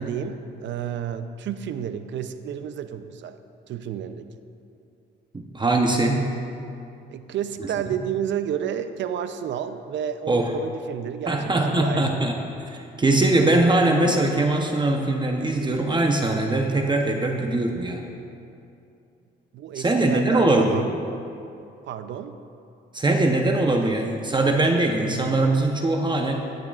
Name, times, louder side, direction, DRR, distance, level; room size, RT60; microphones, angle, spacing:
voice 1, 0.0-3.4 3.7-4.3 7.1-12.2 19.5-20.9 21.8-22.4, right 9 dB, 70° right, 10 dB, 0.6 m, -31 dB
voice 2, 5.3-6.3 10.3-10.5 11.3-18.1 19.7-20.8 22.9-26.6, right 2 dB, 25° right, 3 dB, 0.8 m, -22 dB
15.5 x 10.5 x 2.4 m, 2.6 s
cardioid pair, 90°, 20 cm